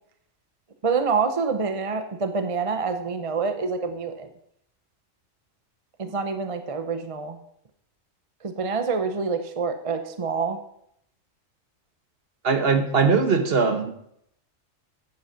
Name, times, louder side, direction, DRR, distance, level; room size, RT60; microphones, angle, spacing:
voice 1, 0.8-4.3 6.0-7.4 8.4-10.6, right 5 dB, 30° right, 8 dB, 0.7 m, -26 dB
voice 2, 12.4-13.9, right 5 dB, 50° right, 7 dB, 1.2 m, -20 dB
9.5 x 7.8 x 5.7 m, 0.73 s
omnidirectional pair, 1.3 m